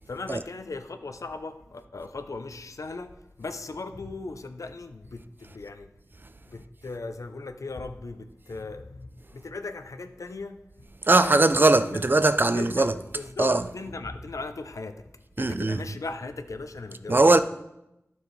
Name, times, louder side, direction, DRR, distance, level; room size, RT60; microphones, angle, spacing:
voice 1, 0.1-3.1 3.4-5.9 6.5-10.6 11.2-12.0 12.5-15.0 15.4-17.4, left 3 dB, 80° left, 0.5 m, -38 dB
voice 2, 11.1-12.9 13.4-13.6 15.4-15.8 17.1-17.4, right 2 dB, 40° right, 0.4 m, -20 dB
12.5 x 4.6 x 3.2 m
wide cardioid pair, 55°, 6 cm